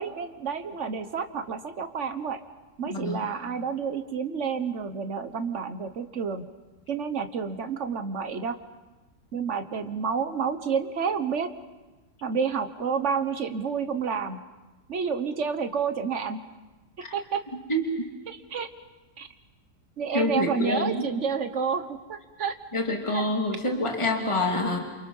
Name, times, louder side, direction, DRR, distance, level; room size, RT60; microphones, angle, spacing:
voice 1, 0.0-2.4 2.8-6.5 6.9-8.6 9.3-11.5 12.2-14.4 14.9-16.4 17.1-17.4 18.3-18.7 19.2-19.3 20.0-22.6 23.1-23.2, right 6 dB, 45° right, 9 dB, 1.5 m, -29 dB
voice 2, 2.8-3.3 17.0-17.1 17.7-17.8 20.1-21.1 22.7-24.8, left 1 dB, 15° left, 1 dB, 2.8 m, -27 dB
29.0 x 28.5 x 5.6 m, 1.2 s
omnidirectional pair, 1.8 m